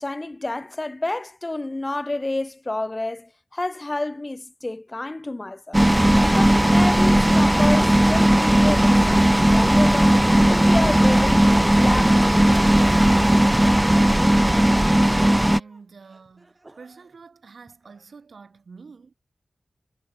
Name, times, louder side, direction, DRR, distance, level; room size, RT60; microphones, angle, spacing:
voice 1, 0.0-5.8 6.2-10.2 10.5-12.5, left 2 dB, 30° left, 0.8 m, -29 dB
sound 1, 5.7-15.6, right 1 dB, 10° right, 0.4 m, -17 dB
voice 2, 14.1-19.1, right 5 dB, 80° right, 3.2 m, -47 dB
Laughter, 15.3-17.2 17.7-18.3, right 2 dB, 35° right, 6.3 m, -55 dB
cardioid pair, 55°, 0 cm